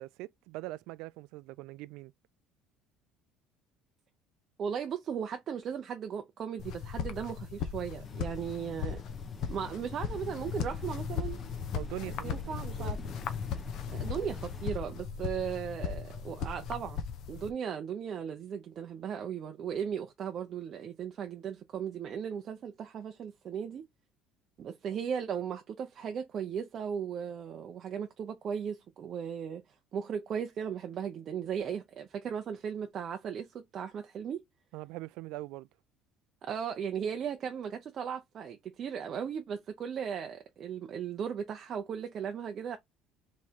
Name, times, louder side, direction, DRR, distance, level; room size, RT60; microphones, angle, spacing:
voice 1, 0.0-2.1 11.7-13.1 34.7-35.7, right 19 dB, 75° right, 0.3 m, -42 dB
voice 2, 4.6-9.0 9.5-11.4 12.2-13.0 13.9-17.0 17.3-23.8 24.6-29.6 29.9-34.4 36.4-42.8, right 7 dB, 35° right, 0.6 m, -37 dB
sound 1, 6.6-17.5, left 7 dB, 50° left, 0.8 m, -37 dB
sound 2, 8.0-14.8, left 4 dB, 15° left, 0.8 m, -49 dB
3.6 x 3.2 x 4.3 m
cardioid pair, 165°, 0 cm